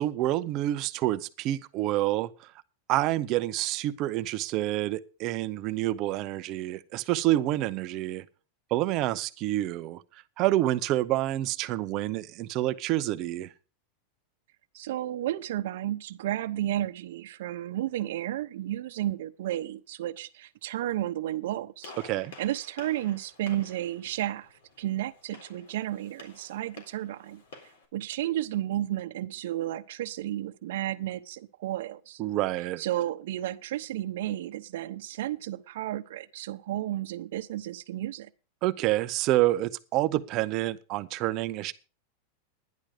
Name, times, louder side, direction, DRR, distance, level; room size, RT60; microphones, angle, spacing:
voice 1, 0.0-2.3 2.9-8.2 8.7-10.0 10.4-13.5 22.0-22.3 32.2-32.8 38.6-41.7, right 15 dB, 30° right, 0.7 m, -28 dB
voice 2, 14.7-21.9 22.4-24.5 24.8-27.4 27.9-32.2 32.8-38.3, right 13 dB, 65° right, 0.9 m, -32 dB
Gunshot gunfire, 21.8-27.9, left 3 dB, 85° left, 3.9 m, -51 dB
11.5 x 10.5 x 5.0 m
supercardioid pair, 175°, 0 cm